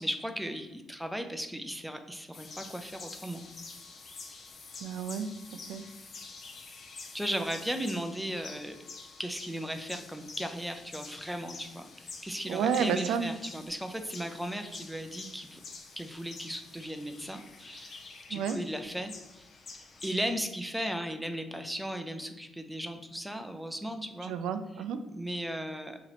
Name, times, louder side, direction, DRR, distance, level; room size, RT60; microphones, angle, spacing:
voice 1, 0.0-3.4 7.1-8.8 9.2-15.6 16.0-18.0 18.3-19.4 20.0-24.3 25.1-26.0, equal, ahead, 6 dB, 0.4 m, -36 dB
sound 1, 2.3-20.3, left 4 dB, 55° left, 0.6 m, -48 dB
voice 2, 4.8-5.3 5.7-5.8 12.5-13.4 18.3-18.6 24.2-25.0, right 7 dB, 85° right, 10 dB, 0.3 m, -30 dB
3.0 x 2.9 x 4.0 m, 1.0 s
cardioid pair, 90°, 0 cm